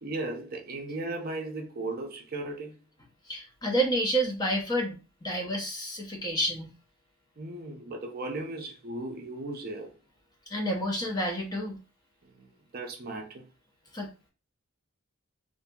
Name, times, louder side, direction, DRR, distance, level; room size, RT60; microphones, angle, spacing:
voice 1, 0.0-2.8 7.4-9.9 12.2-13.5, right 2 dB, 45° right, 0.5 m, -36 dB
voice 2, 3.3-5.0 5.2-6.7 10.5-11.8 13.9-14.1, right 1 dB, 20° left, 0.5 m, -29 dB
2.7 x 2.5 x 2.2 m
head